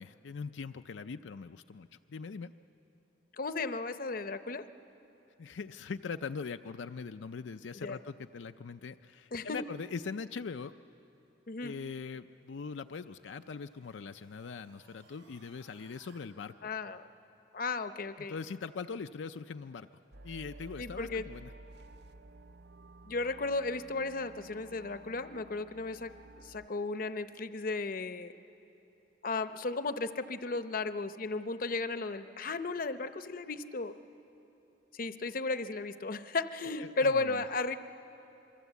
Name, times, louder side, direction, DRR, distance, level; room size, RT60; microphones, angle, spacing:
voice 1, 0.0-2.5 5.4-10.7 11.6-16.7 18.3-19.9 20.2-21.5 36.8-37.4, left 5 dB, 80° left, 8 dB, 0.5 m, -41 dB
voice 2, 3.3-4.7 7.7-8.0 9.3-9.6 11.5-11.7 16.6-17.0 17.5-18.3 20.8-21.3 23.1-28.3 29.2-33.9 34.9-37.8, left 3 dB, 50° left, 11 dB, 0.7 m, -35 dB
sound 1, 12.2-16.2, right 3 dB, 90° right, 4.1 m, -65 dB
sound 2, 20.1-26.7, right 2 dB, 60° right, 0.7 m, -53 dB
26.5 x 22.5 x 8.2 m, 3.0 s
head